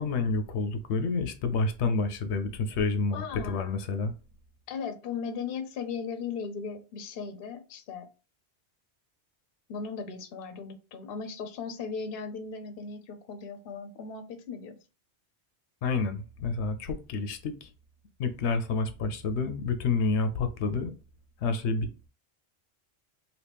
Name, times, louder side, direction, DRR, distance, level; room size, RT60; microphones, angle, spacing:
voice 1, 0.0-4.1 15.8-17.7 18.2-20.9 21.4-22.1, left 4 dB, 85° left, 0.9 m, -29 dB
voice 2, 3.1-3.8 4.7-8.1 9.7-14.8, left 5 dB, 65° left, 0.8 m, -37 dB
2.9 x 2.8 x 3.4 m
omnidirectional pair, 1.1 m